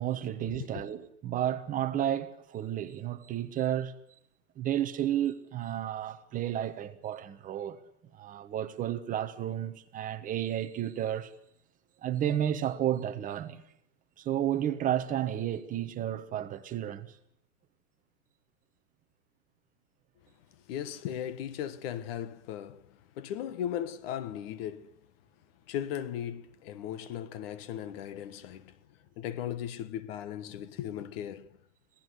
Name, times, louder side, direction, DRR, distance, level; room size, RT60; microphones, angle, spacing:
voice 1, 0.0-3.9 4.6-7.8 8.1-11.3 12.0-13.6 14.2-17.2, right 11 dB, 20° right, 1.3 m, -32 dB
voice 2, 20.7-22.8 23.1-24.9 25.7-28.8 29.2-31.5, left 10 dB, 45° left, 1.5 m, -37 dB
26.5 x 17.5 x 8.2 m
hypercardioid pair, 150°, 43 cm